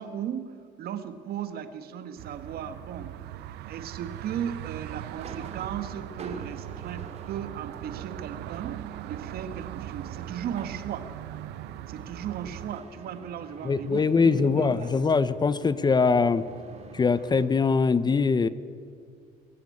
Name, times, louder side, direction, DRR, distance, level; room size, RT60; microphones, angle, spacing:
voice 1, 0.0-3.2 3.7-11.1 11.9-14.8, right 9 dB, 65° right, 10 dB, 1.7 m, -36 dB
sound 1, 2.2-12.8, right 14 dB, 85° right, 0.7 m, -40 dB
sound 2, 5.0-17.5, right 3 dB, 40° right, 2.6 m, -47 dB
voice 2, 13.6-16.4 16.9-18.5, left 4 dB, 25° left, 15 dB, 0.8 m, -22 dB
24.5 x 14.5 x 8.6 m, 2.2 s
cardioid pair, 110°, 17 cm